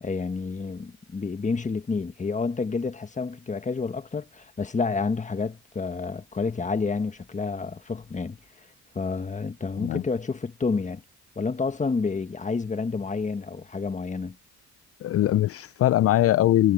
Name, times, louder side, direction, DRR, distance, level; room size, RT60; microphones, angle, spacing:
voice 1, 0.0-8.4 8.9-11.0 11.3-14.4, left 4 dB, 25° left, 1.5 m, -29 dB
voice 2, 15.0-16.7, left 13 dB, 50° left, 0.4 m, -21 dB
cardioid pair, 90°, 30 cm